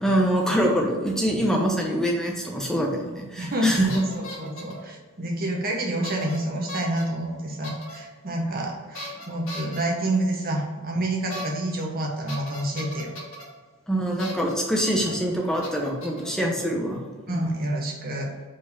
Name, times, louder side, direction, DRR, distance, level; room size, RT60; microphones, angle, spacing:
voice 1, 0.0-3.9 13.9-17.0 17.3-17.5, equal, ahead, -1 dB, 1.0 m, -24 dB
voice 2, 3.3-13.1 17.3-18.3, right 1 dB, 40° right, 0 dB, 1.3 m, -28 dB
sound 1, 3.5-3.6 3.9-4.8 6.0-6.4 6.7-7.0 7.6-8.0 8.9-9.8 11.3-11.5 11.8-11.9 12.3-13.4 14.2-14.5 14.8-15.2 15.6-16.3, left 1 dB, 70° left, 2.1 m, -38 dB
5.2 x 4.6 x 5.6 m, 1.4 s
head